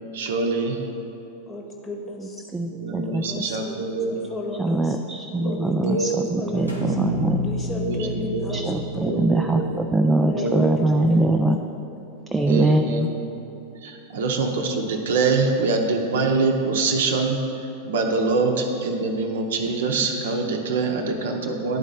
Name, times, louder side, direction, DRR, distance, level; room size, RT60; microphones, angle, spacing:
voice 1, 0.1-0.8 2.7-4.2 5.4-6.7 7.7-8.6 8.9-9.8 10.3-11.3 12.5-13.2 13.8-17.4 17.8-21.8, right 3 dB, 60° right, 3 dB, 0.7 m, -25 dB
voice 2, 1.5-2.4 3.0-3.8 4.1-4.8 5.4-6.8 7.4-8.7 8.9-9.4 10.2-11.6 12.4-12.9, left 2 dB, 20° left, 1 dB, 1.0 m, -34 dB
voice 3, 2.2-3.2 4.6-7.4 8.5-11.6 12.3-13.1, right 2 dB, 10° right, 4 dB, 0.3 m, -22 dB
sound 1, 6.7-10.9, left 1 dB, 90° left, 1.0 m, -31 dB
11.0 x 4.0 x 3.8 m, 2.8 s
figure-of-eight pair, 90°, 0 cm